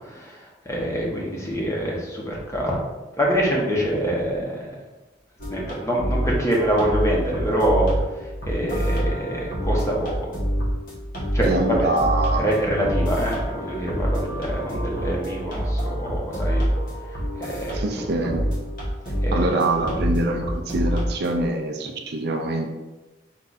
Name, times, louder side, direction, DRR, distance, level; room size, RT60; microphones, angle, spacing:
voice 1, 0.0-2.7 3.2-4.7 5.5-7.9 8.5-10.3 11.3-11.9 12.3-16.6 17.4-17.8 19.2-19.5 19.8-19.9, equal, 15° left, -3 dB, 1.0 m, -25 dB
sound 1, 5.4-21.5, equal, 50° left, 1.2 m, -27 dB
voice 2, 11.4-12.5 17.7-18.5 19.3-22.7, right 2 dB, 60° right, 3 dB, 0.5 m, -24 dB
4.6 x 2.6 x 4.0 m, 1.1 s
head